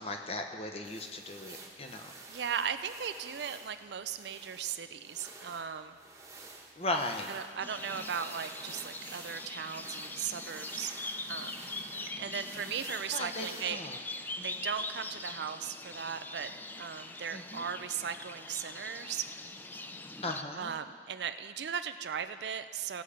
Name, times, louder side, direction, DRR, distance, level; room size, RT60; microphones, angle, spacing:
voice 1, 0.0-2.1 6.8-7.3 13.1-14.0 14.4-14.5 17.3-17.7 20.2-20.7, left 2 dB, 35° left, 4 dB, 0.8 m, -37 dB
sound 1, 0.8-13.6, right 3 dB, 15° right, 1.1 m, -51 dB
voice 2, 2.3-6.0 7.3-10.9 11.3-11.7 12.2-13.8 14.4-16.5 16.8-19.2 20.5-23.0, right 7 dB, 70° right, 10 dB, 0.5 m, -37 dB
sound 2, 7.6-20.4, left 2 dB, 10° left, 0.3 m, -42 dB
17.0 x 7.0 x 5.0 m, 2.1 s
head